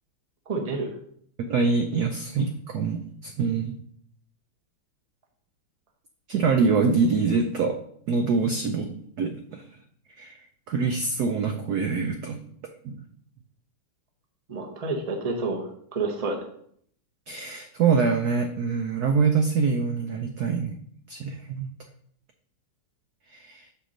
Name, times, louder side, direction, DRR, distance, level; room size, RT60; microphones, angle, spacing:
voice 1, 0.5-0.9 14.5-16.4, right 3 dB, 35° right, 3 dB, 0.6 m, -29 dB
voice 2, 1.4-3.8 6.3-7.8 8.1-9.7 10.2-10.4 10.7-12.4 12.8-13.0 17.3-20.8 21.1-21.7 23.3-23.7, right 5 dB, 90° right, 6 dB, 0.8 m, -25 dB
6.9 x 3.9 x 6.3 m, 0.65 s
omnidirectional pair, 2.4 m